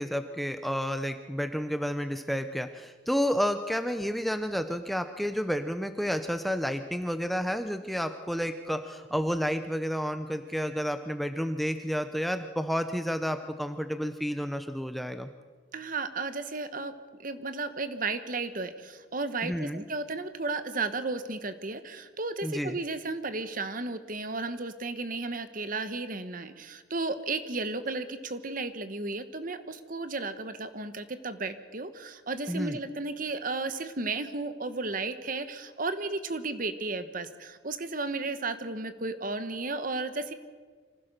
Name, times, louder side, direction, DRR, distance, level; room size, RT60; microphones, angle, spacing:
voice 1, 0.0-15.3 19.4-19.8 22.4-22.8 32.5-32.8, equal, ahead, 8 dB, 0.7 m, -30 dB
voice 2, 15.7-16.9 17.2-40.3, right 3 dB, 45° right, 11 dB, 1.1 m, -34 dB
25.5 x 15.5 x 6.7 m, 1.5 s
head